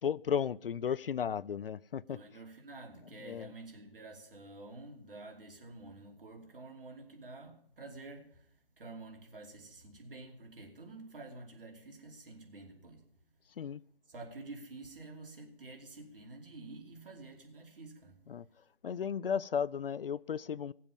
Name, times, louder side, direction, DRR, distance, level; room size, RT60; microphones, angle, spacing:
voice 1, 0.0-2.2 3.2-3.5 13.6-13.8 18.3-18.5 18.8-20.7, left 7 dB, 65° left, 0.4 m, -34 dB
voice 2, 2.1-13.1 14.1-18.2, right 2 dB, 60° right, 2.9 m, -49 dB
18.5 x 7.5 x 5.3 m
figure-of-eight pair, 140°, 30 cm